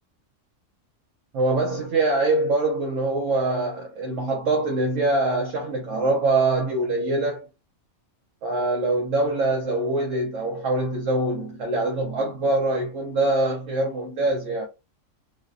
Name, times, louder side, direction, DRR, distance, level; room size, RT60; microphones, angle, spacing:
voice 1, 1.3-7.5 8.4-14.7, right 2 dB, 70° right, 0.9 m, -24 dB
2.5 x 2.1 x 2.4 m
omnidirectional pair, 1.3 m